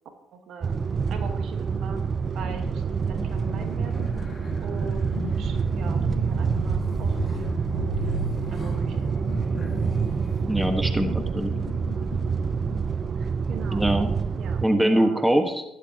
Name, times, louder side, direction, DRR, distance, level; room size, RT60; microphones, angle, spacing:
voice 1, 0.3-0.7 1.1-2.0 2.3-4.1 4.6-8.2 8.5-9.1 13.1-14.0 14.4-15.2, right 5 dB, 60° right, 6 dB, 1.5 m, -41 dB
sound 1, 0.6-14.6, right 5 dB, 40° right, 0.4 m, -27 dB
sound 2, 2.4-12.9, left 3 dB, 65° left, 1.5 m, -37 dB
sound 3, 3.2-10.4, left 2 dB, 45° left, 3.8 m, -47 dB
voice 2, 10.5-11.5 13.7-14.1 14.6-15.6, right 1 dB, 5° right, 6 dB, 1.5 m, -22 dB
14.0 x 11.5 x 2.9 m, 0.87 s
hypercardioid pair, 55°, 0 cm